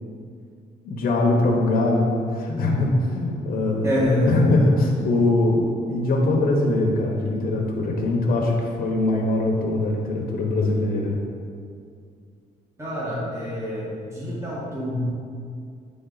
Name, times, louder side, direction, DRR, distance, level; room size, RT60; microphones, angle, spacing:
voice 1, 0.8-3.9 4.3-11.2, left 2 dB, 65° left, -1 dB, 1.0 m, -22 dB
voice 2, 3.8-4.4 12.8-15.0, left 1 dB, 15° right, -7 dB, 1.5 m, -26 dB
9.0 x 3.6 x 4.0 m, 2.3 s
cardioid pair, 120°, 16 cm